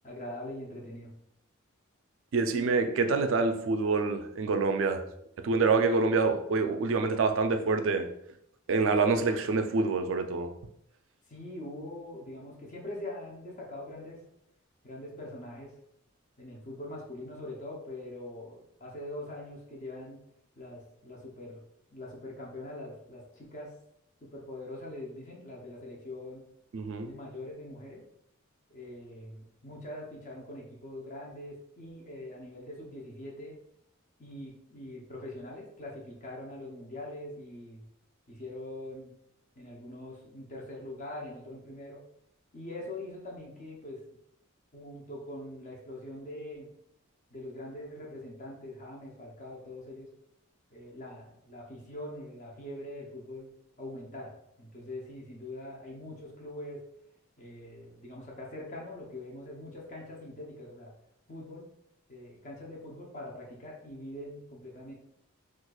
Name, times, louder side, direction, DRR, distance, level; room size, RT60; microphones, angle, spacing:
voice 1, 0.0-1.1 11.3-14.2 14.8-15.7 16.4-20.2 20.6-21.6 21.9-23.7 24.2-26.4 27.0-28.0 28.7-33.6 34.2-37.8 38.3-39.1 39.6-42.0 42.5-44.0 44.7-46.7 47.3-50.1 50.7-53.5 53.8-54.3 54.6-56.8 57.4-60.9 61.3-61.7 62.1-64.9, left 1 dB, 40° left, 0.7 m, -43 dB
voice 2, 2.3-5.0 5.4-8.1 8.7-10.5 26.7-27.1, right 4 dB, 65° right, 0.4 m, -26 dB
4.3 x 2.4 x 2.3 m
head